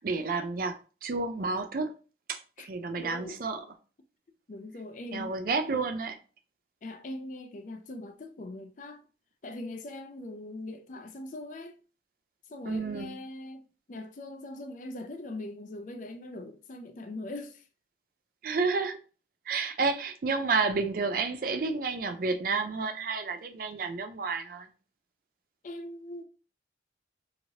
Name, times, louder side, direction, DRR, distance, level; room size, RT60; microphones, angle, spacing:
voice 1, 0.0-1.9 2.3-3.6 5.1-6.2 12.6-13.2 18.4-19.0 19.5-24.7, right 4 dB, 50° right, 0.4 m, -30 dB
voice 2, 3.0-3.4 4.5-5.3 6.8-9.0 9.4-11.7 12.5-13.6 13.9-17.6 25.6-26.2, left 2 dB, 45° left, 0.4 m, -41 dB
2.8 x 2.8 x 2.8 m
head